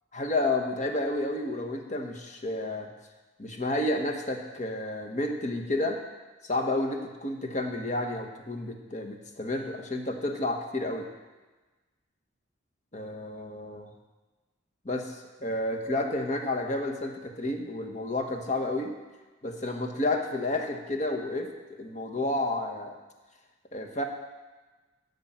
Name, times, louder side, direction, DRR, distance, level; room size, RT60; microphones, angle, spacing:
voice 1, 0.1-2.9 3.4-6.0 6.4-11.1 12.9-13.9 14.8-18.9 19.4-22.9 23.7-24.0, left 2 dB, 35° left, 3 dB, 1.3 m, -31 dB
16.0 x 5.5 x 7.5 m, 1.2 s
head